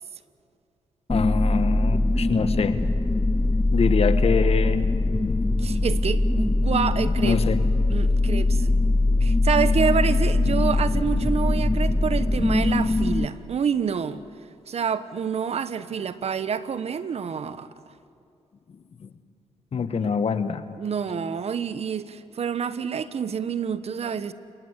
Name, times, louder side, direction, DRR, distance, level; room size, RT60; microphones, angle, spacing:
voice 1, 1.1-2.8 3.7-4.9 7.0-7.6 19.0-19.1 19.7-20.6, left 6 dB, 55° left, 11 dB, 1.5 m, -25 dB
sound 1, 1.1-13.3, left 2 dB, 20° left, 0.8 m, -22 dB
voice 2, 5.6-7.4 7.9-8.7 9.2-14.2 14.7-17.7 20.0-20.1 20.8-24.3, right 7 dB, 60° right, 13 dB, 1.2 m, -27 dB
30.0 x 18.5 x 8.2 m, 2.5 s
supercardioid pair, 60°, 12 cm